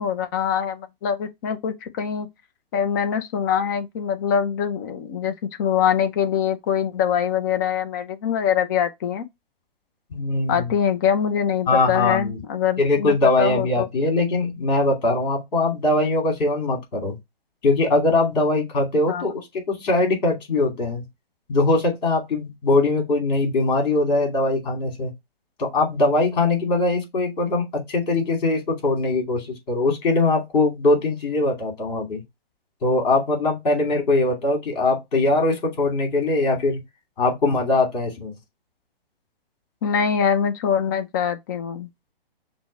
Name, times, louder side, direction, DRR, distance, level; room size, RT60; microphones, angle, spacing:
voice 1, 0.0-2.3 2.7-9.3 10.5-13.9 19.1-19.2 39.8-41.9, left 8 dB, 20° left, 0.4 m, -23 dB
voice 2, 10.1-10.7 11.7-12.4 12.8-17.1 17.6-21.0 21.5-25.1 25.6-32.2 32.8-36.8 37.2-38.3, left 2 dB, 45° left, 2.7 m, -21 dB
6.1 x 2.1 x 4.0 m
hypercardioid pair, 145°, 30 cm